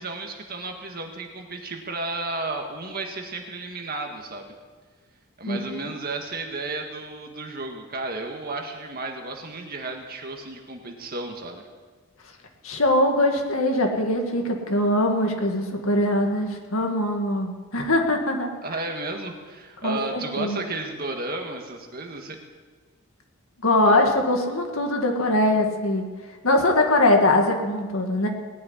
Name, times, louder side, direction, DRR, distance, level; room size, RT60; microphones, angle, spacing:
voice 1, 0.0-4.5 5.4-11.6 18.6-22.4, right 2 dB, 45° right, 3 dB, 1.8 m, -33 dB
voice 2, 5.5-5.8 12.6-18.5 19.8-20.6 23.6-26.1 26.4-28.3, left 1 dB, 70° left, 3 dB, 2.1 m, -22 dB
19.0 x 6.5 x 9.9 m, 1.4 s
head